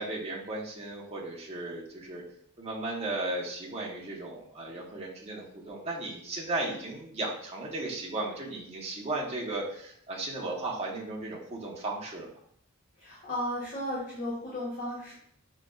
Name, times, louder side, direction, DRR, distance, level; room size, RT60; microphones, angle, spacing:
voice 1, 0.0-2.2 2.6-12.3, right 2 dB, 30° right, -4 dB, 0.7 m, -35 dB
voice 2, 13.0-15.1, left 1 dB, 45° left, -8 dB, 1.1 m, -34 dB
6.1 x 2.3 x 2.2 m, 0.66 s
head